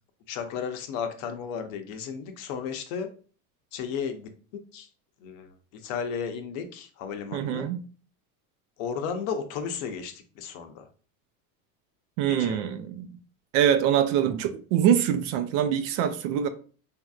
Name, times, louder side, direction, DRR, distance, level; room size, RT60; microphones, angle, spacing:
voice 1, 0.3-3.1 3.7-4.9 5.2-7.7 8.8-10.9 12.3-12.6, left 6 dB, 65° left, 0.7 m, -34 dB
voice 2, 7.3-7.8 12.2-13.2 13.5-16.5, right 9 dB, 55° right, 0.5 m, -24 dB
3.2 x 2.7 x 2.3 m
supercardioid pair, 105°, 46 cm